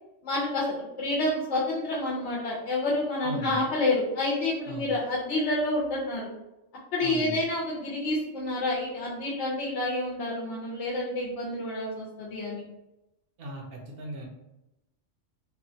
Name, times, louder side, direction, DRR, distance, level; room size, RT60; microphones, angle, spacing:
voice 1, 0.2-6.3 6.9-12.6, left 2 dB, 70° left, -5 dB, 1.0 m, -29 dB
voice 2, 3.2-3.7 4.7-4.9 7.0-7.4 13.4-14.3, right 1 dB, 60° right, 0 dB, 0.7 m, -38 dB
3.0 x 2.1 x 2.7 m, 0.91 s
omnidirectional pair, 1.3 m